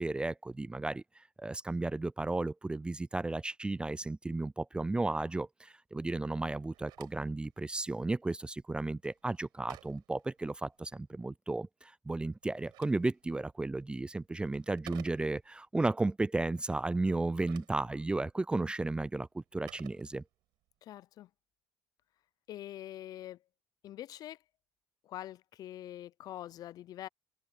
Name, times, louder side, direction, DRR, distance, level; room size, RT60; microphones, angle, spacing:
voice 1, 0.0-20.2, right 2 dB, 15° right, 0.4 m, -34 dB
Telephone, 6.5-11.0 12.3-15.7 17.1-20.7, right 17 dB, 75° right, 6.8 m, -58 dB
voice 2, 20.8-21.3 22.5-23.4 23.8-24.4 25.0-27.1, left 13 dB, 60° left, 0.6 m, -44 dB
open air
supercardioid pair, 85°, 7 cm